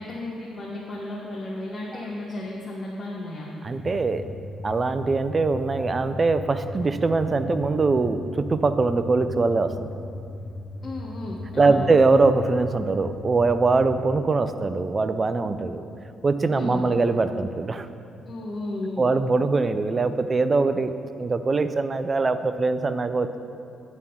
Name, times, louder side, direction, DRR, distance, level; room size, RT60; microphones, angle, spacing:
voice 1, 0.0-3.5 10.8-11.8 16.5-16.9 18.3-19.1, left 2 dB, 40° left, -4 dB, 1.0 m, -34 dB
voice 2, 3.6-4.3 4.6-9.9 11.6-15.9 16.2-17.9 19.0-20.9 21.2-23.4, right 3 dB, 30° right, 11 dB, 0.4 m, -22 dB
sound 1, 3.7-14.2, left 2 dB, 25° left, 0.5 m, -37 dB
9.4 x 3.6 x 6.9 m, 2.6 s
cardioid pair, 90°, 0 cm